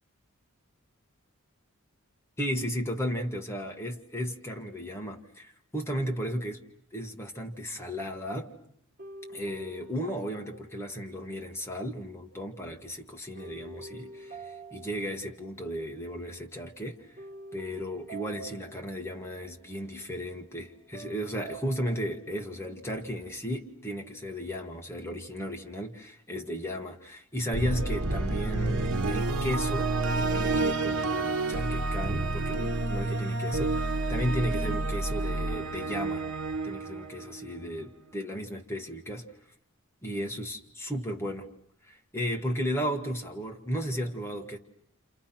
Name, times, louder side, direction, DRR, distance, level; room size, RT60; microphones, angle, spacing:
voice 1, 2.4-6.6 6.9-8.5 9.3-17.2 17.5-36.3 36.6-39.3 40.0-41.5 41.8-44.6, equal, 10° left, 2 dB, 1.8 m, -35 dB
sound 1, 8.3-8.6 9.0-11.7 13.3-15.9 16.2-16.6 17.2-19.9 20.9-22.4, right 2 dB, 35° right, 3.0 m, -47 dB
sound 2, 27.5-37.7, right 2 dB, 80° right, 1.3 m, -29 dB
30.0 x 28.0 x 5.9 m, 0.67 s
head